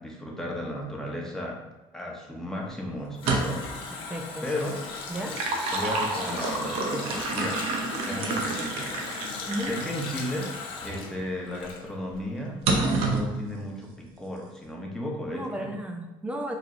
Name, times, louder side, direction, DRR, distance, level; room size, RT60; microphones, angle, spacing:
voice 1, 0.0-1.6 1.9-3.6 4.4-4.8 5.7-7.6 8.0-10.5 10.8-12.6 12.9-15.7, left 1 dB, 5° left, -2 dB, 0.9 m, -34 dB
Water tap faucet, 2.7-12.3 12.6-12.7, left 4 dB, 60° left, 0.7 m, -38 dB
sound 1, 3.1-3.8 5.1-9.9 10.5-10.6 12.7-13.3, right 3 dB, 75° right, 0.7 m, -28 dB
voice 2, 4.1-4.5 5.1-5.4 9.5-9.7 15.3-16.6, right 1 dB, 10° right, 3 dB, 0.4 m, -33 dB
4.5 x 3.2 x 2.5 m, 1.1 s
supercardioid pair, 100°, 10 cm